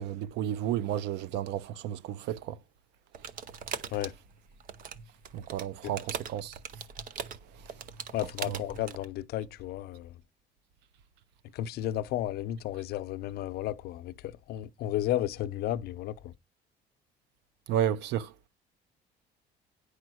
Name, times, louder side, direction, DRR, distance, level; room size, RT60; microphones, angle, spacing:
voice 1, 0.0-2.6 5.3-6.6 8.5-8.6 17.7-18.3, right 10 dB, 80° right, 0.6 m, -32 dB
sound 1, 3.1-9.1, right 7 dB, 50° right, 0.9 m, -41 dB
voice 2, 8.1-10.1 11.5-16.3, left 13 dB, 65° left, 0.7 m, -33 dB
10.0 x 4.9 x 6.2 m
cardioid pair, 160°, 18 cm